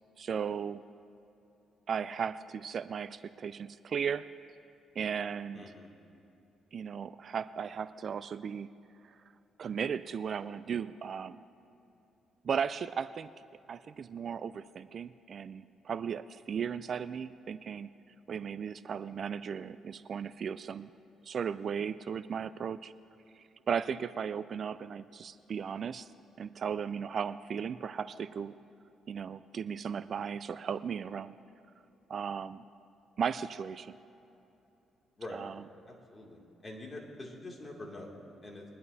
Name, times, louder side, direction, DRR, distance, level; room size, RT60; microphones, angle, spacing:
voice 1, 0.2-0.8 1.9-4.3 5.0-5.6 6.7-8.7 9.0-9.2 9.6-11.4 12.4-13.3 13.7-17.9 18.3-20.9 21.2-22.9 23.3-26.1 26.4-28.5 29.1-31.3 32.1-32.6 33.2-34.0 35.3-35.6, right 7 dB, 50° right, 14 dB, 0.3 m, -36 dB
voice 2, 5.5-5.9 35.2-35.5 35.9-38.6, left 1 dB, 25° left, -1 dB, 2.4 m, -45 dB
22.5 x 11.0 x 2.7 m, 2.9 s
cardioid pair, 90°, 0 cm